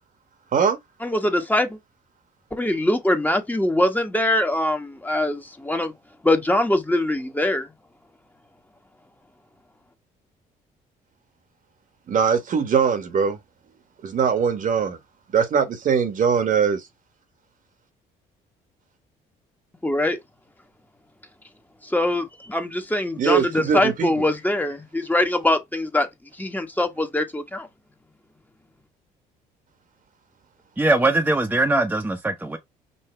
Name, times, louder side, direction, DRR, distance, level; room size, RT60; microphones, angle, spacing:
voice 1, 1.0-1.8 2.5-5.9 6.2-7.7 19.8-20.2 21.8-26.1 26.4-27.7, left 1 dB, 10° left, 1.3 m, -23 dB
voice 2, 12.1-13.4 14.0-15.0 15.3-16.9 23.2-24.2, right 6 dB, 50° right, 1.4 m, -21 dB
voice 3, 30.8-32.6, right 2 dB, 10° right, 1.0 m, -21 dB
5.6 x 2.7 x 3.4 m
supercardioid pair, 70°, 17 cm